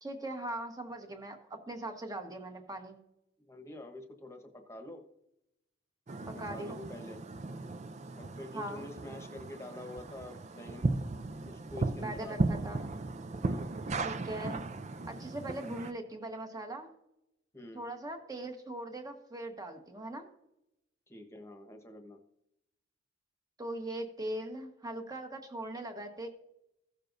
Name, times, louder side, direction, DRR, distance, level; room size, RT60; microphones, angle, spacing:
voice 1, 0.0-3.0 6.3-6.9 8.5-8.9 11.9-12.9 14.0-14.6 15.1-16.9 17.7-20.3 23.6-26.3, right 1 dB, 20° right, 5 dB, 1.2 m, -40 dB
voice 2, 3.5-5.0 6.3-7.2 8.1-10.9 11.4-12.6 13.4-13.7 17.5-17.9 21.1-22.2, left 1 dB, 15° left, 5 dB, 1.2 m, -47 dB
sound 1, 6.1-15.9, right 3 dB, 40° right, 0.4 m, -36 dB
15.5 x 6.6 x 2.6 m, 0.83 s
head